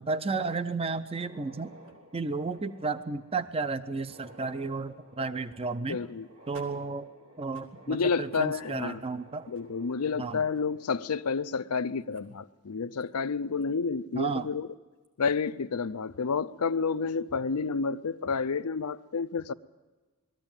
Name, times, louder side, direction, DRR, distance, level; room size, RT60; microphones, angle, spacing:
voice 1, 0.0-1.8 2.1-6.0 6.5-7.1 7.4-9.5 10.2-10.4 14.1-14.5, right 4 dB, 25° right, 0.5 m, -32 dB
sound 1, 1.0-11.8 12.1-12.2 13.0-13.1 13.6-13.7 15.0-15.3, right 1 dB, 75° right, 3.1 m, -54 dB
voice 2, 5.9-6.3 7.9-9.0 9.5-14.7 15.2-19.5, left 5 dB, 85° left, 0.6 m, -30 dB
20.5 x 14.5 x 8.9 m
head